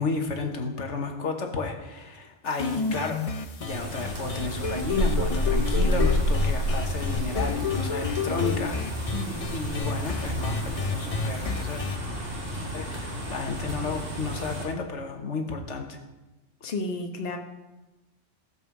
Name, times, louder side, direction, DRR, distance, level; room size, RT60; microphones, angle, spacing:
voice 1, 0.0-3.2 3.6-9.1 9.5-11.8 12.7-16.0, left 4 dB, 75° left, 3 dB, 1.5 m, -32 dB
sound 1, 2.5-12.0, left 4 dB, 40° left, 0.6 m, -31 dB
sound 2, 3.7-14.6, equal, 65° right, 2.6 m, -30 dB
voice 2, 9.1-9.7 16.6-17.4, left 3 dB, 55° left, 3 dB, 1.3 m, -33 dB
15.5 x 5.4 x 7.2 m, 1.1 s
omnidirectional pair, 1.2 m